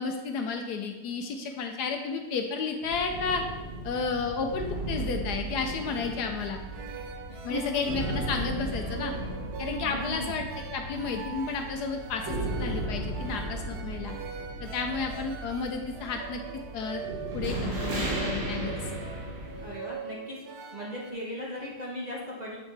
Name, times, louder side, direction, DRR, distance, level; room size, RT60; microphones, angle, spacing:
voice 1, 0.0-3.4 3.8-6.6 7.4-9.1 9.6-10.5 10.7-14.1 14.6-16.4 16.7-17.1 17.3-18.8, left 5 dB, 70° left, 4 dB, 1.1 m, -32 dB
sound 1, 2.8-19.7, right 1 dB, 80° right, 2.4 m, -36 dB
sound 2, 5.8-21.1, right 6 dB, 65° right, 1.1 m, -43 dB
voice 2, 7.3-7.8 9.8-10.4 19.6-20.4 20.7-22.6, left 1 dB, 30° right, -6 dB, 0.9 m, -37 dB
7.5 x 6.0 x 3.3 m, 1.2 s
omnidirectional pair, 2.0 m